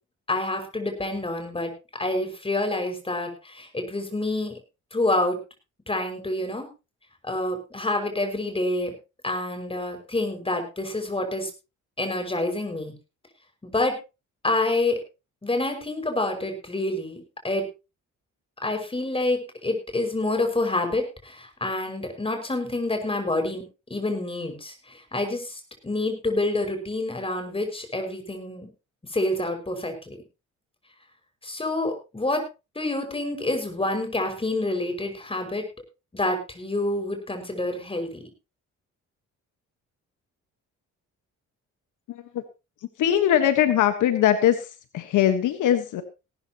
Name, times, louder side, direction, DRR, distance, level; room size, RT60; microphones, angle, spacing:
voice 1, 0.3-1.7 2.0-4.6 4.9-5.4 5.9-6.7 7.2-8.9 9.2-11.5 12.0-12.9 13.6-14.0 14.4-15.0 15.4-17.7 18.6-23.6 23.9-28.7 29.1-30.2 31.4-32.4 32.7-35.7 36.1-38.2, left 2 dB, 20° left, 5 dB, 5.8 m, -27 dB
voice 2, 42.1-42.4 43.0-46.0, left 10 dB, 85° left, 9 dB, 1.5 m, -21 dB
18.0 x 13.0 x 3.0 m, 0.29 s
cardioid pair, 90°, 30 cm